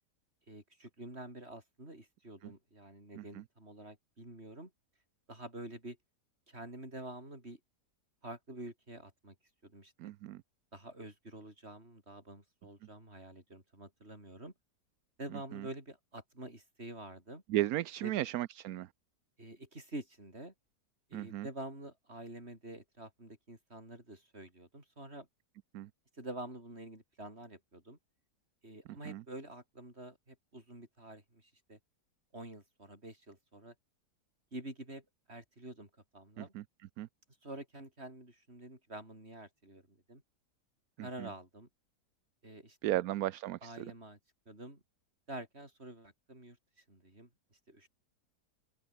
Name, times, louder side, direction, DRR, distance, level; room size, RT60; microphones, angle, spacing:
voice 1, 0.5-4.7 5.3-6.0 6.5-7.6 8.2-9.3 9.6-9.9 10.7-14.5 15.2-17.4 18.0-18.1 19.4-20.5 21.1-25.3 26.1-28.0 28.6-31.8 32.3-33.7 34.5-36.5 37.4-40.2 41.0-41.7 42.4-43.0 43.6-44.2 44.4-44.8 45.3-47.9, right 1 dB, 40° right, 6.9 m, -48 dB
voice 2, 10.0-10.4 15.5-15.6 17.5-18.9 21.1-21.5 25.7-25.9 29.0-29.2 36.4-36.6 37.0-37.1 41.2-41.3 42.8-43.7, right 14 dB, 70° right, 1.0 m, -35 dB
omnidirectional pair, 1.8 m